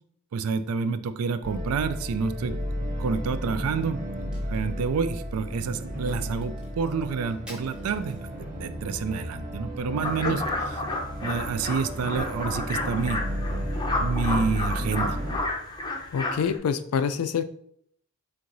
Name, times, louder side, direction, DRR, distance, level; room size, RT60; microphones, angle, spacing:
voice 1, 0.3-2.6 3.0-4.0 4.5-8.3 8.6-10.8 11.2-13.2 14.0-15.2, right 5 dB, 75° right, 12 dB, 0.3 m, -28 dB
sound 1, 1.4-15.4, equal, 40° right, 0.9 m, -33 dB
Crack, 4.1-8.7, equal, 5° right, 0.9 m, -51 dB
sound 2, 10.0-16.6, left 2 dB, 20° left, 0.5 m, -31 dB
voice 2, 16.1-17.4, left 6 dB, 75° left, 11 dB, 0.3 m, -26 dB
4.5 x 3.7 x 2.6 m, 0.66 s
head